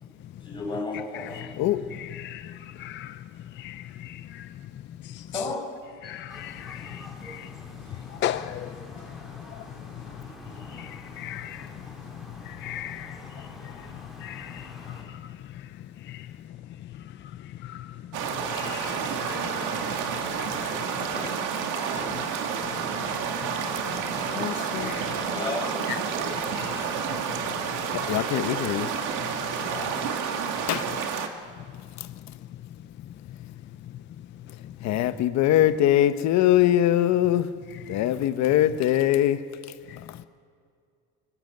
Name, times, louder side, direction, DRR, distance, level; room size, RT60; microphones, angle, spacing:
voice 1, 0.4-1.5 5.3-5.7 6.0-6.2 7.9-8.0 10.1-10.8 20.5-21.4 21.9-22.2 24.1-25.8 29.7-30.0, left 3 dB, 15° left, 6.1 m, -36 dB
voice 2, 2.0-3.2 3.6-4.5 5.0-5.3 6.0-7.5 8.1-8.7 9.5-9.7 10.7-11.7 12.4-13.7 14.2-15.2 16.1-16.3 17.6-17.9 18.5-19.5 19.8-20.0 20.3-20.8 24.7-25.2 26.5-26.9 37.9-38.0 39.9-40.0, left 12 dB, 35° left, 0.5 m, -37 dB
sound 1, 6.3-15.0, left 1 dB, ahead, 4.2 m, -46 dB
sound 2, 18.1-31.3, right 6 dB, 70° right, 2.3 m, -30 dB
voice 3, 24.3-24.9 27.9-28.9 30.7-30.9 32.0-32.1 34.8-37.5 37.9-39.4, left 12 dB, 60° left, 1.1 m, -22 dB
25.5 x 17.0 x 7.9 m
cardioid pair, 155°, 31 cm